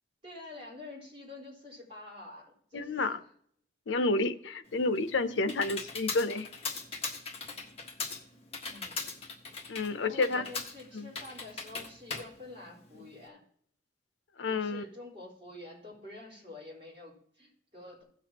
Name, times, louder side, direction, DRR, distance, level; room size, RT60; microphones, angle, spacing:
voice 1, 0.2-2.9 8.6-8.9 10.0-13.4 14.5-18.0, left 2 dB, 30° right, -5 dB, 4.1 m, -47 dB
voice 2, 2.7-3.2 3.9-6.5 9.7-10.4 10.9-11.1 14.4-14.8, left 3 dB, 85° left, 10 dB, 0.7 m, -30 dB
Computer keyboard, 4.7-13.2, left 4 dB, 35° left, 1.4 m, -40 dB
16.5 x 7.0 x 2.9 m, 0.64 s
head